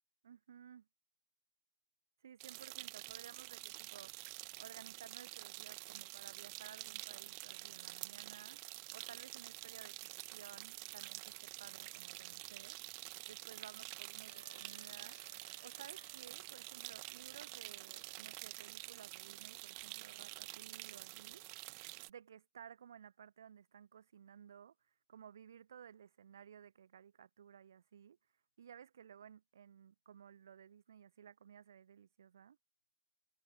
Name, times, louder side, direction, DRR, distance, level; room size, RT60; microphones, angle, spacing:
voice 1, 0.2-0.9 2.2-4.3 4.6-21.4 22.1-24.7 25.1-28.2 28.6-32.6, right 8 dB, 50° right, 1.2 m, -57 dB
sound 1, 2.4-22.1, right 40 dB or more, 30° right, 0.8 m, -49 dB
Wind instrument woodwind instrument, 14.3-19.1, left 4 dB, 70° left, 4.5 m, -66 dB
figure-of-eight pair, 125°, 2 cm